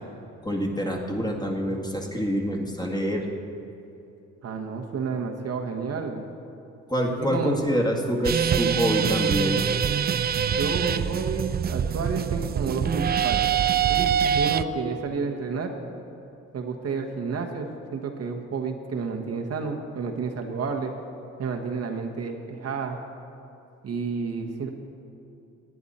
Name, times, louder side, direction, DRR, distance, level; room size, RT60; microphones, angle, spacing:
voice 1, 0.4-3.3 6.9-9.6, equal, 15° left, 0 dB, 1.8 m, -26 dB
voice 2, 4.4-6.3 7.2-7.6 10.6-13.6 13.9-15.7 16.5-20.9 21.4-23.0 23.8-24.7, right 5 dB, 55° right, 3 dB, 1.2 m, -30 dB
sound 1, 8.2-14.6, right 8 dB, 35° right, 0.4 m, -24 dB
18.5 x 9.5 x 4.2 m, 2.9 s
cardioid pair, 90°, 30 cm